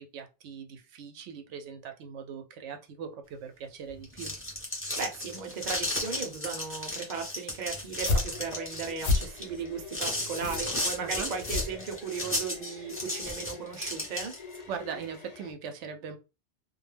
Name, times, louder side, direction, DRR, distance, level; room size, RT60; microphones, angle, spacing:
voice 1, 0.0-4.3 11.0-11.3 14.7-16.2, right 6 dB, 90° right, 0.9 m, -40 dB
sound 1, 3.9-14.6, left 1 dB, 15° left, 0.7 m, -34 dB
voice 2, 5.0-14.3, right 5 dB, 50° right, 0.7 m, -36 dB
sound 2, 7.8-12.3, left 3 dB, 80° left, 0.9 m, -32 dB
sound 3, 8.3-15.5, left 5 dB, 60° left, 0.4 m, -47 dB
2.3 x 2.1 x 3.2 m
omnidirectional pair, 1.2 m